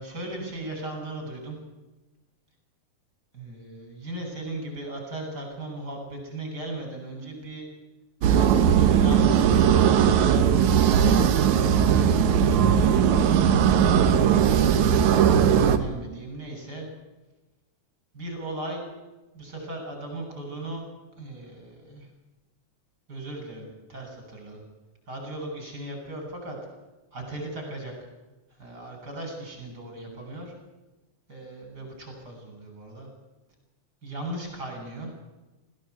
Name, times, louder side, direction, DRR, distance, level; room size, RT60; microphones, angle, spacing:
voice 1, 0.0-1.6 3.3-7.7 8.3-10.5 11.0-13.1 14.1-16.9 18.1-18.9 19.3-20.8 21.2-22.1 23.1-24.6 25.1-26.6 27.1-27.9 28.5-30.5 31.3-33.1 34.0-35.1, right 1 dB, 30° right, 2 dB, 7.8 m, -37 dB
sound 1, 8.2-15.8, right 8 dB, 75° right, 2.6 m, -19 dB
21.0 x 16.5 x 8.3 m, 1.1 s
omnidirectional pair, 3.5 m